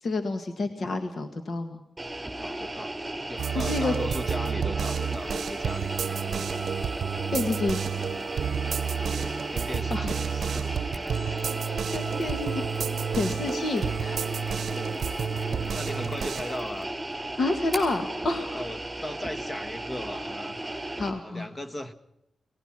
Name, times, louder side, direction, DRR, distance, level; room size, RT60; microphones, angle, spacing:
voice 1, 0.0-1.8 3.6-3.9 7.3-7.8 9.9-10.1 11.9-12.6 13.2-14.2 17.4-18.6 20.7-21.5, left 2 dB, 55° left, 7 dB, 1.8 m, -29 dB
sound 1, 2.0-21.1, right 1 dB, 15° right, 5.9 m, -36 dB
voice 2, 2.4-2.9 3.3-6.7 9.0-11.2 14.7-15.1 15.8-16.9 18.5-20.6 21.2-21.9, left 1 dB, 25° left, 7 dB, 1.6 m, -38 dB
sound 2, 3.4-16.6, right 7 dB, 75° right, 0.8 m, -30 dB
Mechanisms, 10.9-18.1, right 1 dB, ahead, 5.5 m, -47 dB
23.0 x 19.5 x 6.0 m, 0.86 s
wide cardioid pair, 110°, 0 cm